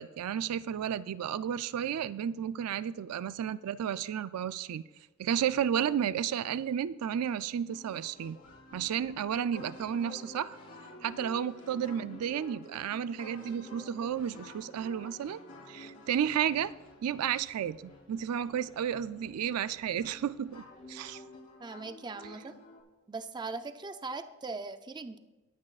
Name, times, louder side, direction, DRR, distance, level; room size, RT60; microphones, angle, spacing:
voice 1, 0.0-4.8 5.2-8.4 8.7-10.6 11.0-15.4 15.7-16.7 17.0-21.2, right 9 dB, 85° right, 0.3 m, -32 dB
sound 1, 7.7-22.8, left 1 dB, 80° left, 3.9 m, -51 dB
voice 2, 21.6-22.6 23.1-25.2, right 3 dB, 20° right, 0.4 m, -40 dB
19.5 x 8.4 x 2.4 m
head